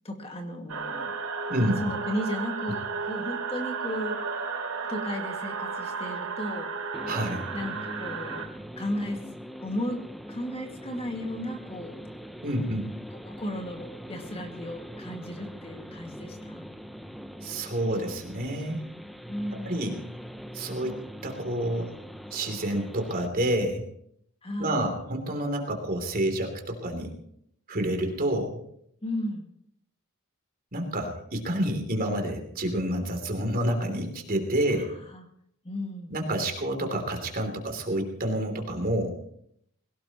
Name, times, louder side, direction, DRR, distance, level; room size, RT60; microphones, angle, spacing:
voice 1, 0.0-1.1 1.8-4.2 4.9-6.7 7.5-8.5 8.8-9.2 9.6-10.0 10.3-12.0 13.2-16.7 19.3-20.0 24.4-24.8 29.0-29.5 34.8-34.9 35.1-35.2 35.6-36.1, equal, 25° left, 3 dB, 2.1 m, -34 dB
sound 1, 0.7-8.5, right 5 dB, 80° right, 3.0 m, -33 dB
voice 2, 1.5-1.8 7.1-7.5 12.4-12.9 17.4-18.9 19.6-20.0 20.5-20.9 21.2-21.9 22.3-23.8 24.6-27.1 27.7-28.6 30.7-34.9 36.1-39.2, right 1 dB, 45° right, 3 dB, 3.2 m, -28 dB
sound 2, 6.9-23.3, equal, ahead, 0.7 m, -42 dB
21.5 x 18.0 x 3.1 m, 0.69 s
head